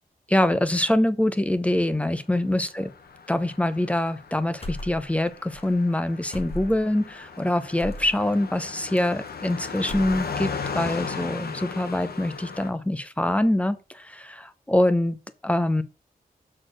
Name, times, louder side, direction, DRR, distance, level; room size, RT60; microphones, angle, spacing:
voice 1, 0.3-2.9 3.3-15.2 15.4-15.8, left 1 dB, 10° left, 0.7 m, -24 dB
Car passing by, 2.8-12.7, left 5 dB, 85° left, 1.0 m, -37 dB
sound 1, 4.6-5.3 5.5-5.7 6.3-7.0 7.8-8.1 9.0-9.5 9.8-10.5, left 1 dB, 40° left, 1.2 m, -36 dB
6.5 x 4.0 x 6.3 m
wide cardioid pair, 125°, 16 cm